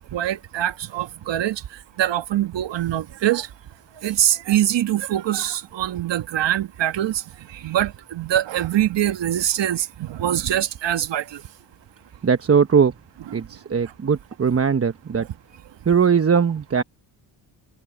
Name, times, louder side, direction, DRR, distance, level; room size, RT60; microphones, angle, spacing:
voice 1, 0.1-1.6 2.0-3.5 4.0-7.2 7.5-11.4 16.8-16.9, right 12 dB, 65° right, 1.6 m, -23 dB
voice 2, 12.2-12.9 13.3-15.3 15.9-16.8, right 6 dB, 30° right, 1.1 m, -19 dB
supercardioid pair, 65°, 46 cm